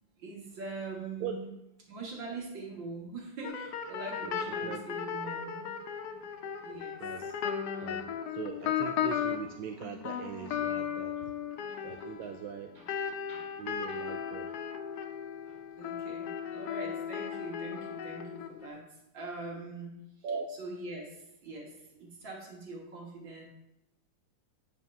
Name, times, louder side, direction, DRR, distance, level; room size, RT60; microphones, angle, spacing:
voice 1, 0.2-1.5 1.9-5.8 6.1-6.2 6.6-7.0 7.7-7.9 11.2-11.3 11.7-11.8 12.2-12.3 12.7-12.9 13.3-13.6 13.9-14.1 15.5-23.4, right 3 dB, 60° right, -2 dB, 2.2 m, -43 dB
sound 1, 3.4-9.5 9.8-18.7, left 8 dB, 85° left, 0.8 m, -36 dB
voice 2, 7.0-7.3 7.8-11.1 11.8-12.7 13.6-14.5 20.2-20.5, right 6 dB, 75° right, 4 dB, 1.2 m, -40 dB
9.3 x 4.4 x 5.3 m, 0.88 s
omnidirectional pair, 2.4 m